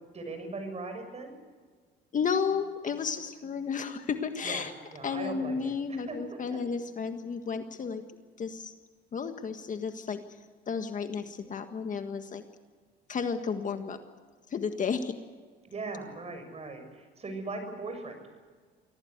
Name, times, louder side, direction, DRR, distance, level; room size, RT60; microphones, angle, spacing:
voice 1, 0.1-1.3 4.4-6.6 15.6-18.2, right 3 dB, 30° right, 6 dB, 6.8 m, -39 dB
voice 2, 2.1-4.7 5.0-8.0 8.4-8.7 9.1-10.2 10.7-12.4 13.1-14.0 14.5-15.2, left 6 dB, 40° left, 7 dB, 1.7 m, -32 dB
24.5 x 17.0 x 8.1 m, 1.5 s
cardioid pair, 110°, 21 cm